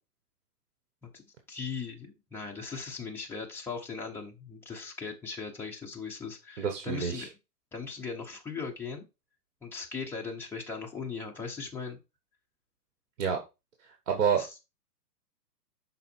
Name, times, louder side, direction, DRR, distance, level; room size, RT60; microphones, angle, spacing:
voice 1, 1.0-7.3 7.7-9.0 9.6-12.0 14.4-14.5, left 5 dB, 5° left, -1 dB, 0.8 m, -39 dB
voice 2, 6.6-7.3 13.2-13.4 14.1-14.4, right 7 dB, 50° right, 4 dB, 1.5 m, -28 dB
6.3 x 4.1 x 4.4 m, 0.25 s
hypercardioid pair, 145°, 48 cm